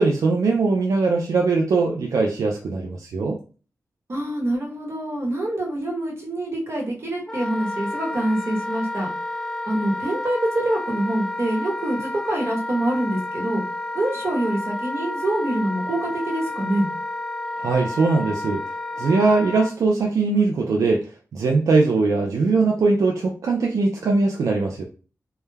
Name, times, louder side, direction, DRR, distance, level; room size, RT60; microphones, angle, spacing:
voice 1, 0.0-3.4 17.6-18.6 19.0-21.0 21.3-24.8, right 3 dB, 80° right, 1 dB, 0.4 m, -20 dB
voice 2, 4.1-9.1 9.7-13.6 13.9-16.9, right 1 dB, 50° right, 0 dB, 1.0 m, -25 dB
Wind instrument woodwind instrument, 7.3-19.7, left 1 dB, 10° left, 0.3 m, -31 dB
2.2 x 2.1 x 3.2 m, 0.37 s
cardioid pair, 75°, 6 cm